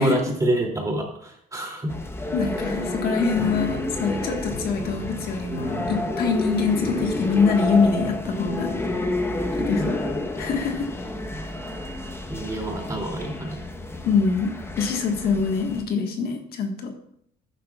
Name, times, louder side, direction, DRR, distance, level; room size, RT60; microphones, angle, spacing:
voice 1, 0.0-1.9 9.8-10.2 12.3-13.6, right 1 dB, 20° right, 0 dB, 2.7 m, -27 dB
sound 1, 1.9-15.8, left 2 dB, 15° left, 1.0 m, -30 dB
voice 2, 2.3-8.7 9.6-10.0 10.4-10.9 11.2-11.4 14.0-16.9, left 5 dB, 65° left, 3 dB, 1.5 m, -24 dB
sound 2, 3.4-9.8, left 1 dB, 40° left, 3.7 m, -40 dB
14.0 x 10.0 x 2.4 m, 0.69 s
cardioid pair, 110°, 17 cm